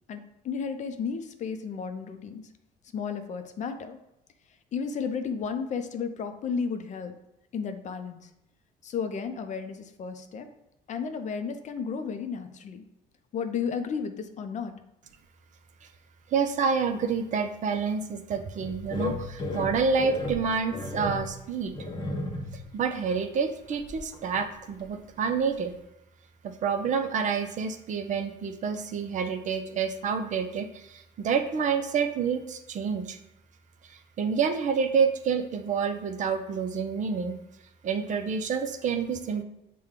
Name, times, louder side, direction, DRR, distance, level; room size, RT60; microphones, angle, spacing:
voice 1, 0.1-2.5 2.9-4.0 4.7-7.2 7.5-8.3 8.8-10.5 10.9-12.9 13.3-14.7, left 6 dB, 45° left, 7 dB, 0.5 m, -33 dB
voice 2, 16.3-21.7 22.7-25.7 26.4-33.2 34.2-37.4 37.8-39.4, right 6 dB, 45° right, 7 dB, 0.5 m, -28 dB
sound 1, 18.6-22.7 23.1-23.2 23.7-24.4 24.8-24.9 25.3-25.4, left 2 dB, 25° left, 0.9 m, -34 dB
6.3 x 2.2 x 3.6 m, 0.88 s
cardioid pair, 110°, 17 cm